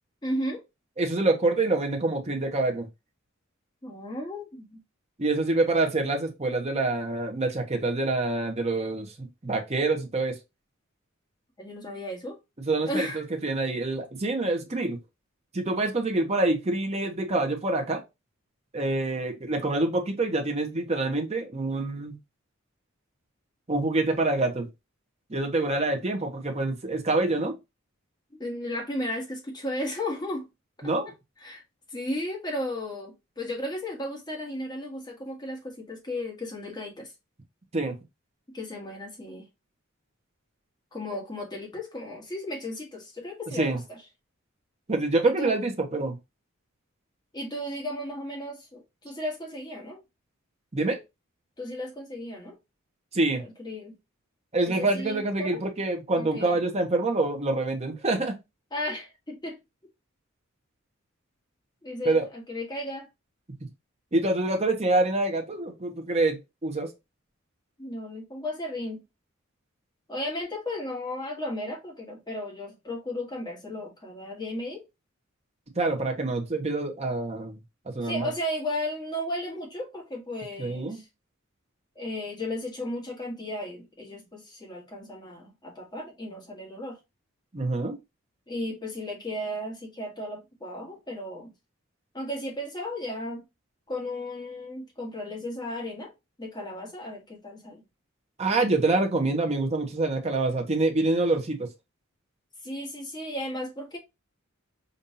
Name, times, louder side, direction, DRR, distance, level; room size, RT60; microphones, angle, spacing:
voice 1, 0.2-0.6 3.8-4.8 11.6-12.4 12.8-13.2 28.4-30.5 31.4-31.6 31.9-37.1 38.5-39.5 40.9-44.0 45.2-45.6 47.3-50.0 51.6-52.5 53.4-53.9 54.6-55.6 56.1-56.6 58.7-59.6 61.8-63.1 67.8-69.0 70.1-74.8 78.0-81.0 81.9-87.0 88.5-91.5 92.1-93.4 93.9-96.1 96.4-97.8 102.6-104.0, left 1 dB, 20° left, 1.4 m, -35 dB
voice 2, 1.0-2.9 5.2-10.4 12.6-15.0 15.5-18.0 18.7-22.2 23.7-24.7 25.3-27.6 30.8-31.1 37.7-37.9 43.6-43.8 44.9-46.2 50.7-51.0 53.1-53.4 54.5-58.3 62.0-62.3 64.1-66.9 75.8-77.5 77.9-78.3 80.6-81.0 87.5-87.9 98.4-101.6, right 2 dB, 30° right, 0.9 m, -26 dB
5.3 x 2.6 x 2.7 m
head